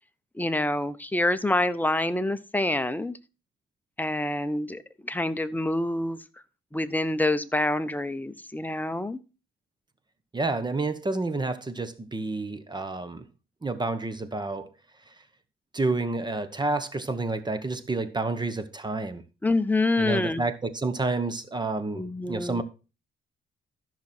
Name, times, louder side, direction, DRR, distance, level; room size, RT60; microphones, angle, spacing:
voice 1, 0.4-3.2 4.0-6.2 6.7-9.2 19.4-20.4 21.9-22.6, left 2 dB, 10° left, 0.9 m, -27 dB
voice 2, 10.3-13.2 13.6-14.7 15.7-19.2 20.0-22.6, right 3 dB, 20° right, 1.1 m, -29 dB
13.5 x 6.1 x 4.3 m
cardioid pair, 90°, 20 cm